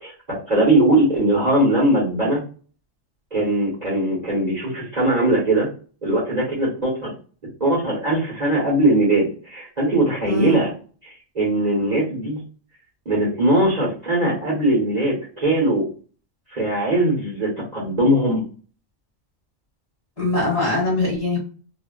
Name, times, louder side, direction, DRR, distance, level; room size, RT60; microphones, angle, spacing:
voice 1, 0.0-2.4 3.3-5.7 6.0-7.1 7.6-10.7 11.0-12.4 13.0-15.9 16.5-18.4, right 1 dB, 35° right, -6 dB, 1.1 m, -20 dB
voice 2, 10.3-10.6 20.2-21.4, left 2 dB, 30° left, -5 dB, 1.3 m, -22 dB
2.5 x 2.3 x 2.3 m, 0.40 s
omnidirectional pair, 1.3 m